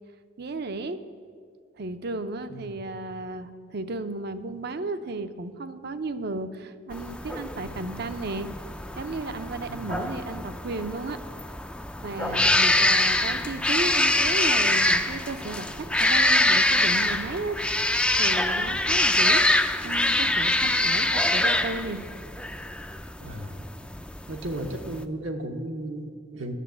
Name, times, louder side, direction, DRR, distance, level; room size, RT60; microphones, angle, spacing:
voice 1, 0.4-1.0 1.8-8.5 9.0-11.2 12.0-17.6 17.8-17.9 18.2-19.4 19.8-22.0, right 2 dB, 55° right, 10 dB, 0.6 m, -34 dB
sound 1, 6.9-25.0, left 2 dB, 5° left, 0.4 m, -25 dB
voice 2, 12.2-12.6 23.2-23.7 24.3-26.5, right 1 dB, 80° right, 3 dB, 1.0 m, -35 dB
10.0 x 7.0 x 9.0 m, 2.1 s
head